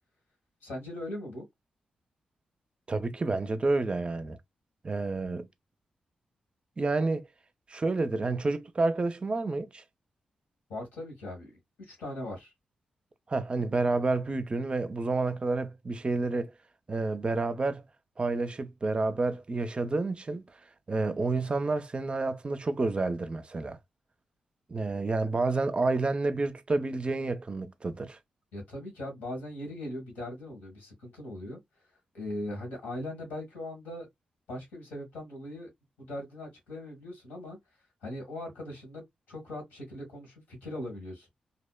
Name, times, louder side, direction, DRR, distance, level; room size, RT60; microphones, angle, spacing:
voice 1, 0.6-1.5 10.7-12.5 28.5-31.6 32.1-34.1 34.5-35.7 36.0-37.6 38.0-39.0 39.3-41.3, left 1 dB, 85° left, 1.3 m, -39 dB
voice 2, 2.9-4.4 4.8-5.5 6.8-7.2 7.7-9.8 13.3-16.5 16.9-17.8 18.2-20.4 20.9-23.8 24.7-28.2, right 3 dB, 35° right, 0.4 m, -29 dB
2.7 x 2.0 x 2.2 m
supercardioid pair, 40°, 3 cm